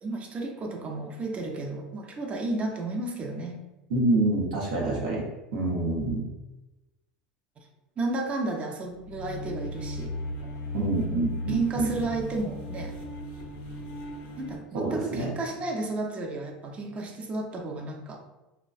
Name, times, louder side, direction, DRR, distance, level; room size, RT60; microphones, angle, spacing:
voice 1, 0.0-3.6 8.0-10.2 11.1-13.0 14.4-18.2, right 2 dB, 30° right, 2 dB, 0.5 m, -32 dB
voice 2, 3.9-6.3 10.7-11.9 14.7-15.3, right 2 dB, 80° right, -2 dB, 0.7 m, -27 dB
sound 1, 9.0-14.6, left 1 dB, 55° left, 0.5 m, -36 dB
2.5 x 2.1 x 2.3 m, 1.0 s
supercardioid pair, 105°, 4 cm